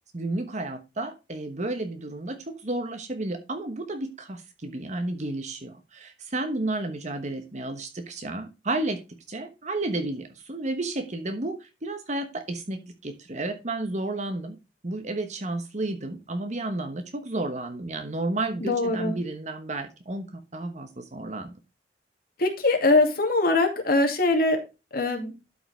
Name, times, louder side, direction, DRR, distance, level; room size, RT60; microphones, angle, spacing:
voice 1, 0.1-14.6 14.8-21.5, right 2 dB, 40° right, 1.2 m, -32 dB
voice 2, 18.6-19.1 22.4-24.6 24.9-25.3, left 2 dB, 55° left, 2.3 m, -22 dB
12.0 x 5.5 x 3.3 m
head